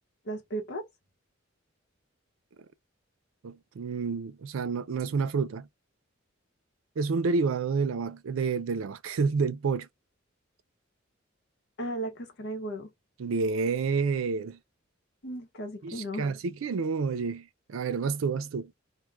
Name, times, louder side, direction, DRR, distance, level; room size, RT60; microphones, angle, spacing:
voice 1, 0.2-0.9 11.8-12.9 15.2-16.3, right 1 dB, 60° left, 0.8 m, -35 dB
voice 2, 3.4-5.7 7.0-9.9 13.2-14.6 15.8-18.7, right 4 dB, 90° right, 0.4 m, -29 dB
2.3 x 2.1 x 3.1 m
head